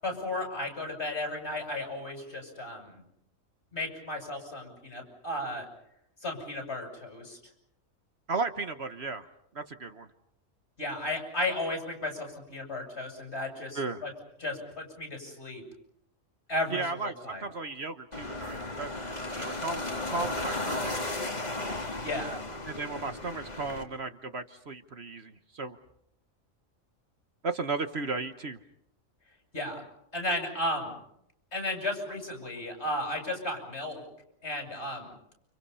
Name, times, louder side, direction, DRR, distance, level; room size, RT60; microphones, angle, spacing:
voice 1, 0.0-3.0 3.7-5.6 6.2-7.4 10.8-14.1 14.4-15.6 16.5-17.4 22.0-22.4 29.5-29.8 30.1-31.0 31.5-34.0 34.4-35.1, left 1 dB, 50° left, 3 dB, 8.3 m, -34 dB
voice 2, 8.3-9.3 9.5-10.1 13.7-14.0 16.7-18.9 19.3-20.9 22.6-25.8 27.4-28.6, right 3 dB, 55° right, 9 dB, 1.4 m, -35 dB
sound 1, 18.1-23.8, left 2 dB, 30° left, 2.6 m, -35 dB
30.0 x 27.5 x 5.6 m, 0.75 s
omnidirectional pair, 1.4 m